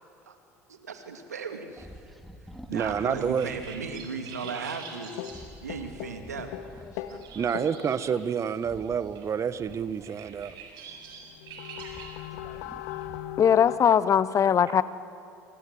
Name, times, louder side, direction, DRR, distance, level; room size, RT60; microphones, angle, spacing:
voice 1, 0.7-2.1 2.7-5.1 5.6-6.5 7.1-7.2, right 5 dB, 85° right, 5 dB, 2.4 m, -37 dB
sound 1, 1.8-4.1 5.2-7.6 8.6-10.9 11.4-13.8, equal, ahead, 2.7 m, -50 dB
voice 2, 2.7-3.5 4.5-4.7 7.3-10.5, right 7 dB, 35° right, 13 dB, 1.4 m, -29 dB
sound 2, 2.7-13.1, right 6 dB, 55° right, 7.3 m, -48 dB
sound 3, 4.4-4.9 5.2-7.2 7.5-7.9 10.9-11.0 11.2-13.8, left 13 dB, 65° left, 1.4 m, -38 dB
voice 3, 13.4-14.8, left 8 dB, 40° left, 16 dB, 1.1 m, -21 dB
29.0 x 25.5 x 7.9 m, 2.7 s
hypercardioid pair, 65°, 9 cm